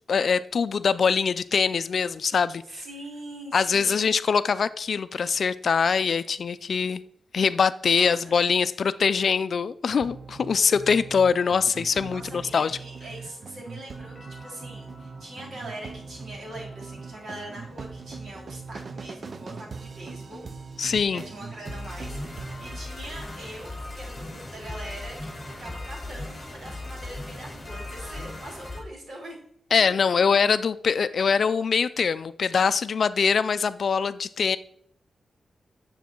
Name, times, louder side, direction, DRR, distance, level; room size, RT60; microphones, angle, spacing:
voice 1, 0.1-2.8 3.5-7.0 7.3-12.7 20.8-21.2 29.7-34.6, left 6 dB, 55° left, 0.4 m, -23 dB
voice 2, 2.6-4.2 7.9-8.4 12.0-20.5 21.1-29.4, right 1 dB, 60° right, 4.0 m, -42 dB
sound 1, 9.9-22.8, right 5 dB, 40° right, 0.6 m, -41 dB
sound 2, 13.9-28.8, left 2 dB, 10° left, 2.6 m, -40 dB
9.4 x 7.1 x 4.5 m
wide cardioid pair, 165°, 0 cm